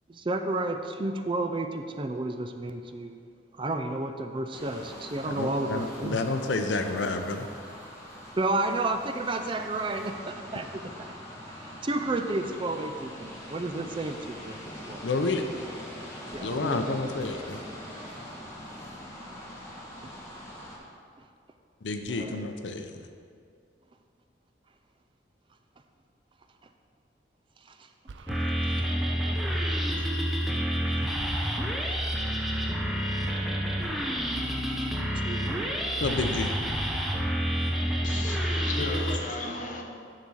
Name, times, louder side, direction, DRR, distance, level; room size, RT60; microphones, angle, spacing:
voice 1, 0.1-3.2 3.6-6.3 8.4-11.2 11.5-15.1 16.3-17.0 20.0-20.1 22.1-22.4 27.7-27.8 28.7-28.8 29.2-29.6 30.0-30.1 35.2-35.7, right 2 dB, 30° right, 6 dB, 0.4 m, -32 dB
sound 1, 4.5-20.8, equal, 15° left, 1.5 m, -43 dB
voice 2, 5.3-7.5 15.0-15.5 16.4-17.6 21.8-23.1 36.0-36.5, left 3 dB, 85° left, 6 dB, 0.6 m, -30 dB
sound 2, 28.1-28.5, right 4 dB, 85° right, 0.5 m, -43 dB
sound 3, 28.3-39.2, equal, ahead, 0.8 m, -28 dB
voice 3, 38.0-39.8, left 2 dB, 45° left, 1 dB, 1.0 m, -34 dB
10.5 x 4.1 x 6.3 m, 2.3 s
head